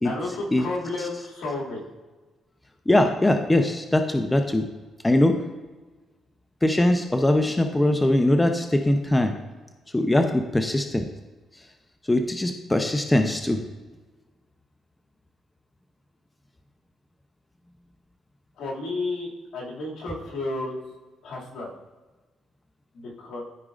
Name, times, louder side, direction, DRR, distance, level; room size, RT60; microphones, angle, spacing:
voice 1, 0.0-1.8 18.5-20.7 21.2-21.7 22.9-23.4, left 2 dB, 75° left, -3 dB, 2.3 m, -32 dB
voice 2, 2.9-4.7 5.0-5.4 6.6-9.3 9.9-11.0 12.1-13.6, left 1 dB, 15° left, 5 dB, 0.6 m, -21 dB
14.0 x 4.7 x 2.5 m, 1.3 s
cardioid pair, 90°, 0 cm